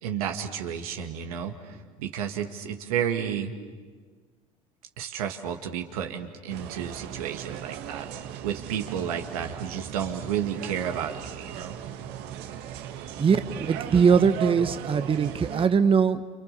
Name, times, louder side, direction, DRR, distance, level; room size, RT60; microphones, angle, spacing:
voice 1, 0.0-3.5 5.0-8.1 8.4-11.8, right 8 dB, 80° right, 4 dB, 2.1 m, -31 dB
sound 1, 6.5-15.7, right 9 dB, 65° right, 1.7 m, -38 dB
voice 2, 13.2-16.2, right 6 dB, 30° right, 10 dB, 1.1 m, -21 dB
29.0 x 28.0 x 6.9 m, 1.5 s
hypercardioid pair, 75°, 18 cm